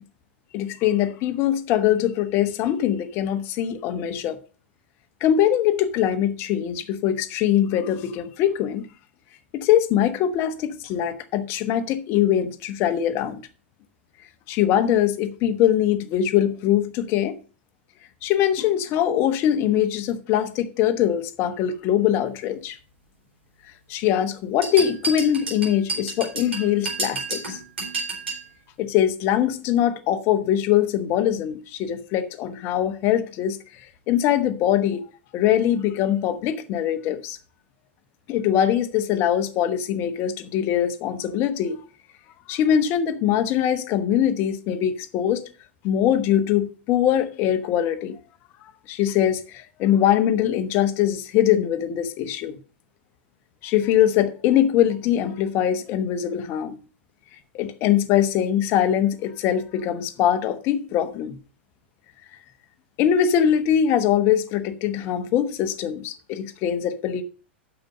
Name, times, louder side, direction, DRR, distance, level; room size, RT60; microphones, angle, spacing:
voice 1, 0.5-4.4 5.2-8.9 9.5-13.4 14.5-17.4 18.2-22.8 23.9-27.6 28.8-33.6 34.1-35.0 35.3-37.4 38.3-41.8 42.5-45.5 45.8-48.2 48.9-52.5 53.6-56.8 57.5-61.4 63.0-67.2, left 10 dB, 40° left, 1.1 m, -22 dB
sound 1, 24.6-28.5, right 3 dB, 70° right, 4.1 m, -30 dB
8.9 x 7.0 x 5.3 m
figure-of-eight pair, 95°, 6 cm